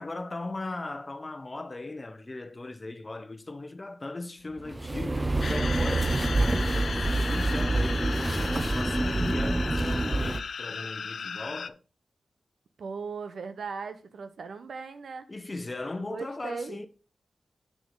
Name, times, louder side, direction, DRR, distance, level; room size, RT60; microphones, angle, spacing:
voice 1, 0.0-11.8 15.3-16.9, left 2 dB, 30° left, 0.8 m, -38 dB
sound 1, 4.6-10.4, right 2 dB, 25° right, 0.6 m, -27 dB
sound 2, 5.4-11.7, left 5 dB, 75° left, 0.4 m, -36 dB
voice 2, 12.8-15.3 16.1-16.8, right 5 dB, 85° right, 0.9 m, -38 dB
7.7 x 6.4 x 3.8 m
wide cardioid pair, 85°, 0 cm